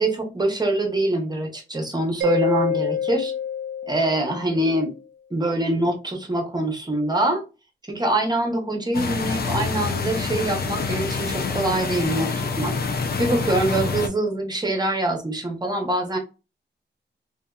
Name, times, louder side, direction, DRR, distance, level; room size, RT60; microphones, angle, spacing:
voice 1, 0.0-3.3 3.9-4.9 5.3-7.4 7.9-12.8 13.2-16.2, right 1 dB, 20° right, 0.8 m, -24 dB
Mallet percussion, 2.2-4.7, left 7 dB, 75° right, 0.4 m, -27 dB
sound 1, 8.9-14.1, left 4 dB, 55° left, 0.5 m, -26 dB
2.7 x 2.6 x 2.3 m
wide cardioid pair, 115°, 19 cm